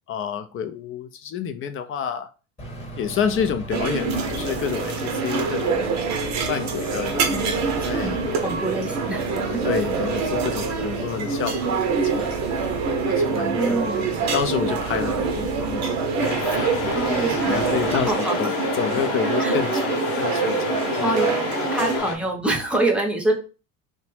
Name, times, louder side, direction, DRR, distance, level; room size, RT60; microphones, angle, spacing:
voice 1, 0.1-2.3 3.0-5.9 6.5-8.4 9.6-12.5 13.1-16.0 16.2-18.1 18.4-21.3, left 8 dB, 35° left, 0.4 m, -29 dB
Engine, 2.6-18.1, right 1 dB, 15° left, 1.1 m, -36 dB
sound 1, 3.7-22.0, right 5 dB, 45° right, 0.6 m, -25 dB
voice 2, 8.0-9.4 10.8-11.0 13.2-14.1 16.9-17.6 18.1-18.4 19.0-19.1 19.4-19.6 21.0-21.3 21.7-23.3, right 1 dB, 5° right, 0.7 m, -26 dB
sound 2, 16.2-22.2, left 6 dB, 60° left, 0.8 m, -30 dB
2.9 x 2.1 x 3.1 m
supercardioid pair, 95°, 39 cm